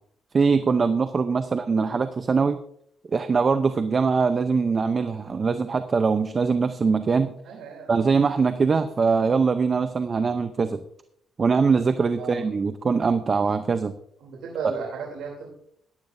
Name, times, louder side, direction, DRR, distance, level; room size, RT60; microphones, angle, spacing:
voice 1, 0.3-2.6 3.1-7.3 7.9-10.8 11.4-13.9, right 5 dB, 40° right, 10 dB, 0.7 m, -22 dB
voice 2, 7.4-7.9 12.2-12.4 14.2-15.5, right 5 dB, 80° right, -1 dB, 3.2 m, -35 dB
14.5 x 11.5 x 2.6 m, 0.68 s
cardioid pair, 90°, 0 cm